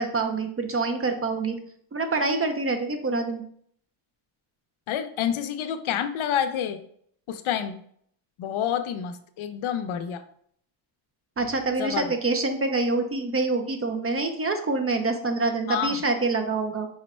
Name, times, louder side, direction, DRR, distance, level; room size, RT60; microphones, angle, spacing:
voice 1, 0.0-1.6 1.9-3.4 11.4-16.9, right 3 dB, 30° right, 5 dB, 0.5 m, -26 dB
voice 2, 4.9-6.8 7.3-7.8 8.4-10.2 11.8-12.1 15.7-16.0, left 9 dB, 75° left, 9 dB, 0.6 m, -28 dB
4.9 x 2.1 x 4.1 m, 0.64 s
cardioid pair, 105°, 48 cm